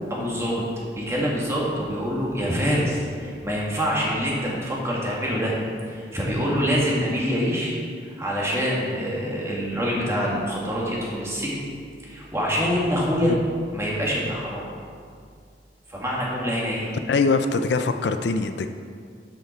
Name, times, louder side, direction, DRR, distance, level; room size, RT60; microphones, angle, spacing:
voice 1, 0.1-0.6 1.0-5.6 5.9-7.7 8.0-11.6 12.0-13.3 13.7-14.7 15.9-16.9, equal, 15° right, -5 dB, 2.0 m, -25 dB
voice 2, 17.1-18.7, left 4 dB, 70° left, 8 dB, 0.5 m, -23 dB
12.5 x 5.8 x 4.5 m, 2.2 s
head